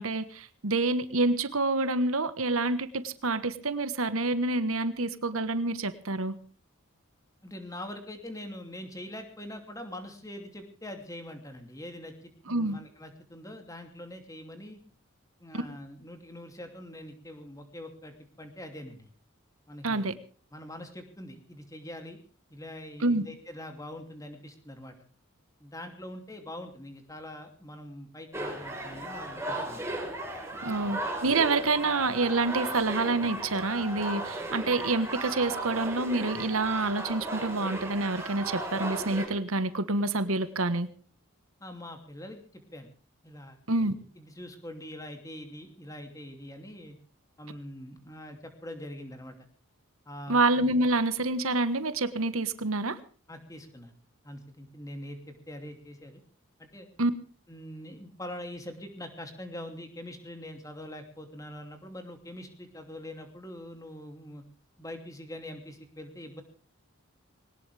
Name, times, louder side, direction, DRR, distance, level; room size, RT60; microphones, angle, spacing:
voice 1, 0.0-6.4 12.5-12.8 15.5-15.6 19.8-20.1 23.0-23.2 30.6-40.9 43.7-43.9 50.3-53.0 57.0-57.1, right 2 dB, 80° right, 13 dB, 1.4 m, -27 dB
voice 2, 7.4-14.8 15.4-19.1 19.7-20.1 20.5-22.2 22.5-24.9 25.6-30.0 30.6-30.9 41.6-42.9 43.2-43.6 44.1-47.0 47.4-49.3 50.1-50.4 53.3-53.9 54.2-56.2 56.6-56.9 57.5-64.4 64.8-66.4, left 1 dB, 15° left, 5 dB, 2.8 m, -43 dB
sound 1, 28.3-39.3, right 1 dB, 10° right, 4.5 m, -36 dB
21.5 x 19.0 x 3.5 m, 0.39 s
head